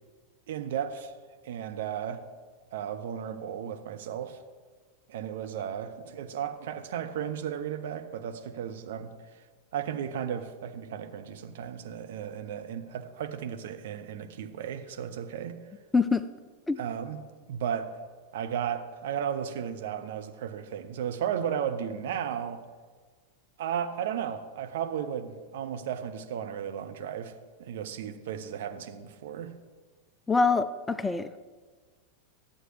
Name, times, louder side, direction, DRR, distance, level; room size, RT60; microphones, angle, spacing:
voice 1, 0.5-1.1 1.4-2.2 2.7-4.4 5.1-9.4 9.7-15.6 16.8-17.2 17.5-18.0 18.3-22.6 23.6-27.3 27.6-29.5, right 8 dB, 55° right, 8 dB, 0.7 m, -34 dB
voice 2, 15.9-16.2 16.7-16.8 30.3-31.3, left 4 dB, 10° left, 13 dB, 0.3 m, -24 dB
11.0 x 7.9 x 3.2 m, 1.4 s
figure-of-eight pair, 90°, 0 cm